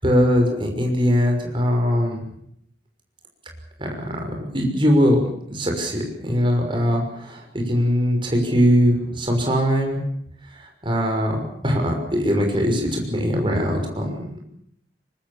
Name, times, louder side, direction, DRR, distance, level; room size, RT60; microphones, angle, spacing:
voice 1, 0.0-2.2 3.8-4.2 4.5-10.0 10.6-14.4, equal, 30° right, 2 dB, 6.0 m, -21 dB
24.0 x 22.0 x 7.2 m, 0.72 s
head